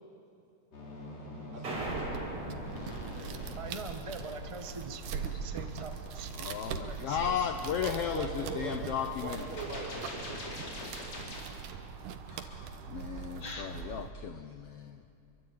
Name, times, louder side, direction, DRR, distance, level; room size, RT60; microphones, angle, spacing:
sound 1, 0.7-11.4, left 1 dB, 55° left, 5.5 m, -44 dB
voice 1, 1.5-2.3 7.8-8.9 9.2-10.6, right 2 dB, 65° right, 6.2 m, -41 dB
sound 2, 1.6-3.6, right 1 dB, 45° right, 6.4 m, -40 dB
sound 3, 1.7-14.1, right 6 dB, 90° right, 2.7 m, -41 dB
voice 2, 3.1-6.5 6.8-7.4, right 3 dB, 30° right, 0.5 m, -44 dB
voice 3, 6.3-9.4 12.3-15.1, left 9 dB, 70° left, 1.4 m, -35 dB
27.0 x 23.5 x 8.8 m
omnidirectional pair, 3.5 m